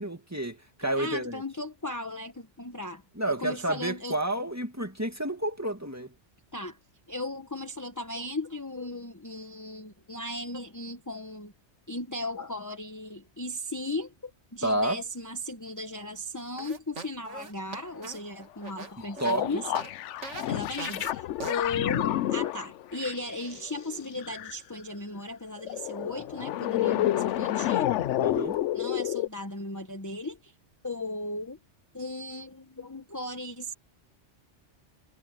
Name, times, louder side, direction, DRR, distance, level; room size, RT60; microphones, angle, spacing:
voice 1, 0.0-1.4 3.2-6.1 14.6-15.0 19.0-19.6 28.2-28.6, right 1 dB, 15° right, 2.0 m, -30 dB
voice 2, 1.0-4.2 6.5-6.8 7.1-11.5 11.9-19.6 20.5-27.9 28.7-30.5 30.8-31.6 31.9-33.7, left 2 dB, 15° left, 1.1 m, -36 dB
sound 1, 16.6-19.4 19.7-19.9 20.2-20.5 20.8-21.1 21.4-21.6, right 4 dB, 80° right, 2.3 m, -40 dB
sound 2, 19.0-24.5 25.6-29.3, left 13 dB, 80° left, 0.9 m, -30 dB
omnidirectional pair, 1.2 m